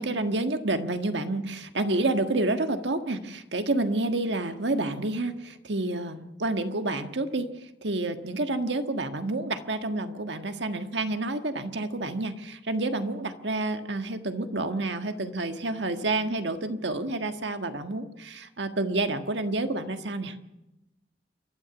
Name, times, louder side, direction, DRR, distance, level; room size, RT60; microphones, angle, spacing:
voice 1, 0.0-20.4, right 2 dB, 80° right, 7 dB, 1.6 m, -29 dB
29.0 x 12.5 x 7.1 m, 0.97 s
head